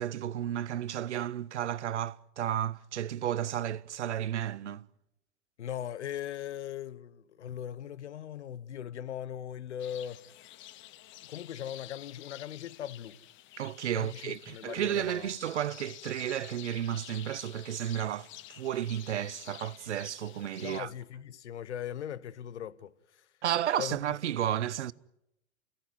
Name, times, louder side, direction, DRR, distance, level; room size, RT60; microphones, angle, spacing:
voice 1, 0.0-4.9 13.6-20.9 23.4-24.9, right 11 dB, 70° right, 0.8 m, -32 dB
voice 2, 5.6-10.2 11.2-13.2 13.9-15.3 20.6-22.9 23.8-24.0, left 10 dB, 70° left, 1.2 m, -39 dB
sound 1, 9.8-20.8, left 15 dB, 35° left, 1.1 m, -50 dB
29.0 x 16.5 x 9.5 m
figure-of-eight pair, 95°, 36 cm